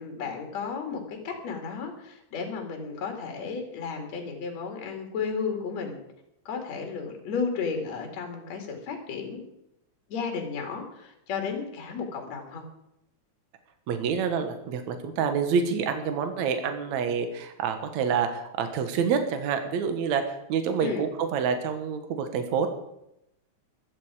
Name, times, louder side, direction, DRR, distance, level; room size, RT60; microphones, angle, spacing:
voice 1, 0.0-6.0 6.4-9.4 10.1-12.6 20.8-21.1, left 5 dB, 60° left, 3 dB, 3.2 m, -33 dB
voice 2, 13.9-22.7, right 6 dB, 65° right, 7 dB, 2.5 m, -27 dB
15.5 x 12.0 x 4.9 m, 0.82 s
omnidirectional pair, 3.6 m